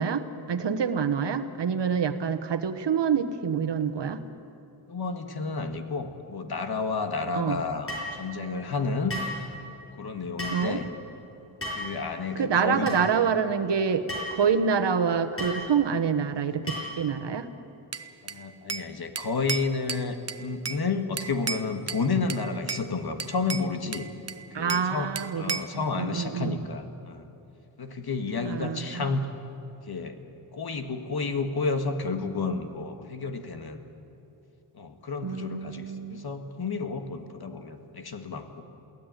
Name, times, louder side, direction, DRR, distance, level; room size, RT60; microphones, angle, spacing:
voice 1, 0.0-4.2 7.3-7.6 10.5-10.8 12.4-14.0 14.3-17.5 24.5-26.6 28.4-29.1 35.2-36.2, right 6 dB, 65° right, 8 dB, 1.3 m, -27 dB
voice 2, 4.9-9.1 10.0-10.9 11.7-13.0 18.2-24.1 24.5-27.3 27.8-29.2 29.9-30.2 30.5-33.8 34.7-38.6, left 4 dB, 55° left, 6 dB, 1.7 m, -31 dB
sound 1, 7.9-8.1 9.1-9.4 10.4-10.6 11.6-11.9 12.9-13.0 14.1-14.3 15.4-15.6 16.7-17.0, left 1 dB, 30° left, 7.1 m, -33 dB
Bell / Glass, 17.9-18.9 19.2-20.8 21.2-22.0 22.3-22.9 23.2-24.9 25.2-25.8, right 5 dB, 35° right, 0.8 m, -34 dB
22.5 x 17.0 x 9.1 m, 2.9 s
wide cardioid pair, 120°, 46 cm